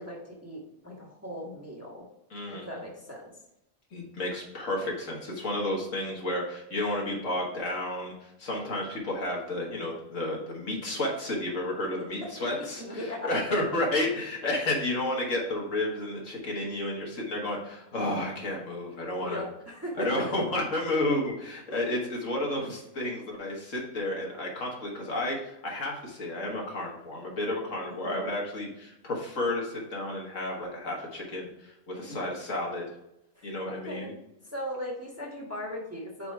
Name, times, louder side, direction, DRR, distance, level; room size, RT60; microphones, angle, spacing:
voice 1, 0.0-2.0 2.5-3.2 12.2-12.3 12.6-13.3 19.2-20.3 21.7-21.9 27.8-28.4 32.0-32.3 33.3-34.1 34.5-36.3, equal, 10° right, -2 dB, 1.2 m, -38 dB
voice 2, 2.3-2.8 3.9-19.4 20.0-32.9 33.4-34.1, left 1 dB, 65° left, -2 dB, 1.8 m, -31 dB
4.9 x 4.5 x 4.7 m, 0.85 s
omnidirectional pair, 1.4 m